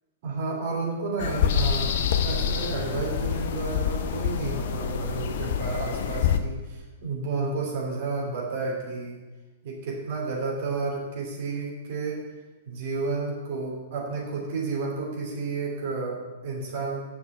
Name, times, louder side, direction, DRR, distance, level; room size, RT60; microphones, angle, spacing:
voice 1, 0.2-1.9 2.2-9.2 9.6-12.2 12.7-17.0, right 4 dB, 50° right, -2 dB, 2.9 m, -31 dB
sound 1, 1.2-6.4, left 8 dB, 55° left, 0.6 m, -26 dB
7.7 x 5.9 x 6.7 m, 1.2 s
figure-of-eight pair, 105°, 0 cm